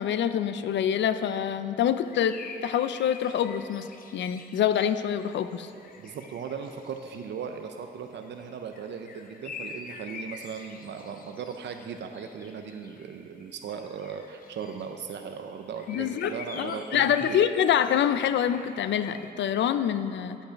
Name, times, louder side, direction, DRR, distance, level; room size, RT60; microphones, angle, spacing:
voice 1, 0.0-3.9 4.1-5.7 15.9-20.4, left 9 dB, 85° left, 12 dB, 0.4 m, -26 dB
sound 1, 2.0-7.7 8.1-19.3, left 4 dB, 50° left, 0.7 m, -47 dB
voice 2, 6.0-17.4, right 6 dB, 75° right, 6 dB, 0.5 m, -38 dB
10.5 x 5.3 x 5.7 m, 2.7 s
wide cardioid pair, 155°, 18 cm